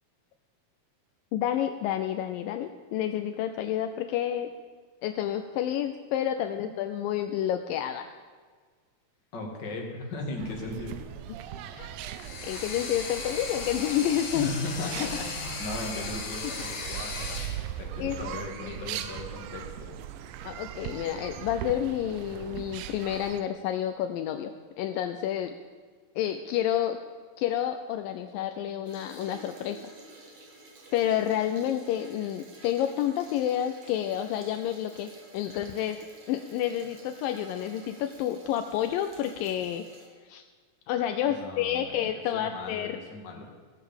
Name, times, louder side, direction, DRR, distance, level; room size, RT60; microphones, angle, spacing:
voice 1, 1.3-4.5 5.0-8.0 11.8-11.9 12.4-14.5 18.0-18.3 18.7-19.0 20.4-25.5 26.2-27.0 27.4-29.9 30.9-36.0 36.3-39.9 40.2-40.4 40.9-43.0, left 11 dB, 80° left, 7 dB, 2.2 m, -29 dB
voice 2, 9.3-11.0 11.7-11.9 14.3-17.5 17.8-20.0 41.2-43.5, left 2 dB, 35° left, 0 dB, 2.1 m, -37 dB
sound 1, 10.4-23.4, right 11 dB, 80° right, 2.4 m, -39 dB
sound 2, 12.1-17.6, left 4 dB, 55° left, 2.9 m, -37 dB
sound 3, 28.9-40.1, right 2 dB, 50° right, 3.1 m, -51 dB
16.0 x 7.9 x 7.2 m, 1.5 s
omnidirectional pair, 4.2 m